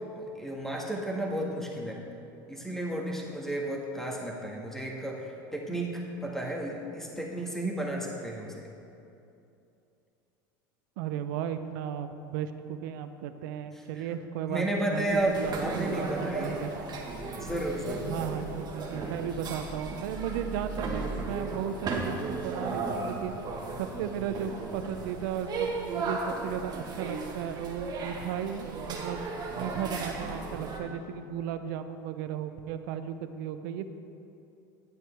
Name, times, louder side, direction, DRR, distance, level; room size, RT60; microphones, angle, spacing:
voice 1, 0.1-2.0 2.5-8.6 14.5-16.6 17.4-18.1, right 1 dB, 5° left, -2 dB, 1.7 m, -32 dB
voice 2, 11.0-15.6 16.0-16.8 18.0-23.4 23.8-29.3 29.5-33.9, right 9 dB, 70° right, 9 dB, 0.5 m, -35 dB
sound 1, 15.1-30.8, right 3 dB, 40° right, 1.5 m, -35 dB
10.5 x 8.9 x 3.5 m, 2.7 s
hypercardioid pair, 90°, 11 cm